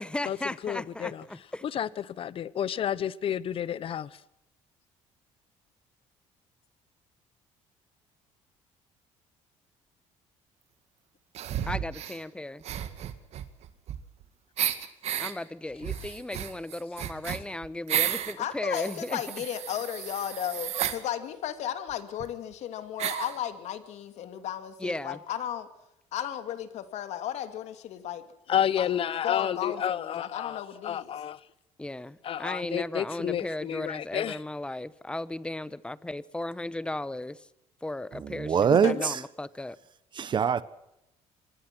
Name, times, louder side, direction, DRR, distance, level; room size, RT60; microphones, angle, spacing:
voice 1, 0.0-1.6 11.6-12.6 15.2-19.2 24.8-25.2 31.8-37.5 37.8-39.8, left 1 dB, 10° left, 1.0 m, -36 dB
voice 2, 0.6-1.2 1.7-4.1 28.5-31.4 32.2-34.4, left 9 dB, 50° left, 1.1 m, -30 dB
sound 1, 11.3-12.2 12.6-14.2 14.6-15.3 15.8-18.3 18.7-21.0 21.9-22.0 22.2-22.3 23.0-23.4, right 11 dB, 60° right, 2.2 m, -32 dB
voice 3, 18.4-25.7 26.1-28.2 28.8-28.9 29.2-31.1 38.7-39.1, left 10 dB, 70° left, 2.6 m, -34 dB
voice 4, 38.2-39.1 40.2-40.6, right 7 dB, 40° right, 1.3 m, -23 dB
26.0 x 20.5 x 6.2 m
cardioid pair, 115°, 12 cm